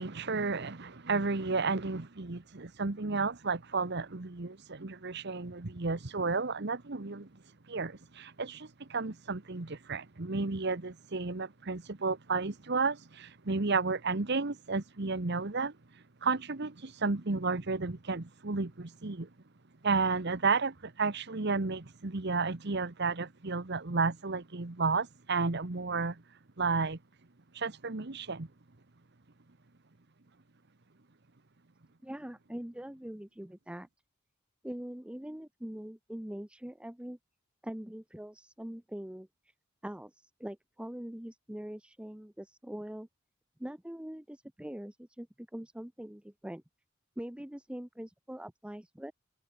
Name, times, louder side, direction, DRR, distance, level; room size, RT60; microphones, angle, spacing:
voice 1, 0.0-7.3 7.7-15.7 16.2-19.3 19.8-26.2 26.6-27.0 27.5-28.5, right 4 dB, 55° right, 1.2 m, -32 dB
voice 2, 32.0-33.9 34.6-37.2 37.6-39.5 39.8-43.1 43.6-46.6 47.2-49.1, equal, 5° right, 0.5 m, -43 dB
head